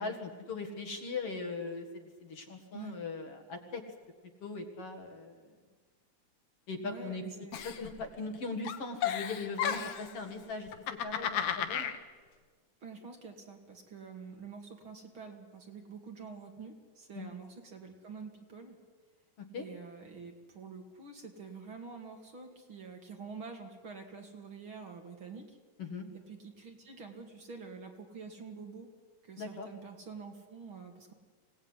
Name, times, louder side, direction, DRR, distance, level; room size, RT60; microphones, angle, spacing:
voice 1, 0.0-3.8 4.4-5.5 6.7-7.2 7.6-10.7 11.0-11.9 17.1-17.3 19.5-19.7 25.8-26.1 29.4-29.7, left 3 dB, 50° left, 4 dB, 2.6 m, -40 dB
voice 2, 6.8-7.6 12.8-18.8 19.6-25.6 26.1-28.9 29.2-31.1, right 5 dB, 45° right, 3 dB, 2.7 m, -47 dB
Giggle, 7.5-8.4 8.6-10.1 10.7-12.0, left 8 dB, 70° left, 2.6 m, -33 dB
25.0 x 17.5 x 9.8 m, 1.5 s
omnidirectional pair, 3.5 m